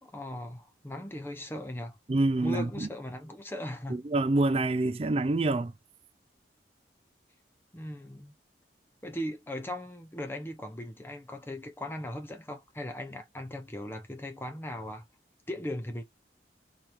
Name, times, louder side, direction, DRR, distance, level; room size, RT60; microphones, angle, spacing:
voice 1, 0.0-2.0 2.4-4.0 7.7-8.3 9.0-15.0 15.5-16.0, left 1 dB, 10° left, 0.7 m, -38 dB
voice 2, 2.1-2.9 3.9-5.7, right 2 dB, 30° right, 0.4 m, -26 dB
4.4 x 3.6 x 3.0 m
head